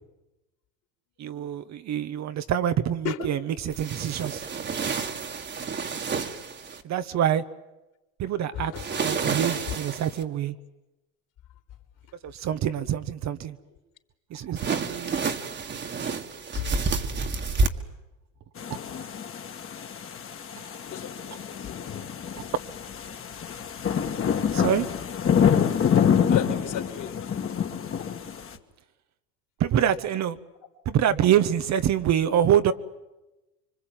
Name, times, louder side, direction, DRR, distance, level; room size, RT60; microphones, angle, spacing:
voice 1, 1.2-4.4 6.8-7.4 8.2-8.7 9.0-10.5 12.2-13.6 14.3-15.2 15.7-15.8 16.6-16.7 24.5-24.9 29.6-30.4 30.8-32.7, right 9 dB, 45° right, 10 dB, 1.3 m, -25 dB
sound 1, 3.7-6.8 8.7-10.2 14.5-17.7, right 4 dB, 25° right, 1.9 m, -29 dB
voice 2, 8.5-8.8 9.7-9.8 16.5-16.7 17.6-17.7 20.7-22.0 26.2-27.6, left 10 dB, 50° left, 5 dB, 4.1 m, -34 dB
sound 2, 18.6-28.5, left 8 dB, 35° left, 2.2 m, -26 dB
26.0 x 25.0 x 9.1 m, 1.0 s
supercardioid pair, 105°, 39 cm